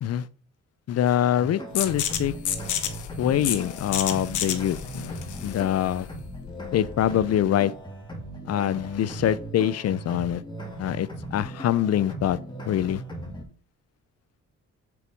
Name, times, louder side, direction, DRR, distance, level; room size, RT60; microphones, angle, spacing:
voice 1, 0.9-2.3 3.2-6.1 6.7-7.7 8.4-10.4 10.8-12.4 12.7-13.0, left 11 dB, 55° left, 0.6 m, -24 dB
sound 1, 1.4-13.4, right 1 dB, 15° left, 2.3 m, -38 dB
sound 2, 1.7-7.2, left 10 dB, 85° left, 1.1 m, -31 dB
6.7 x 4.7 x 5.3 m
cardioid pair, 90°, 30 cm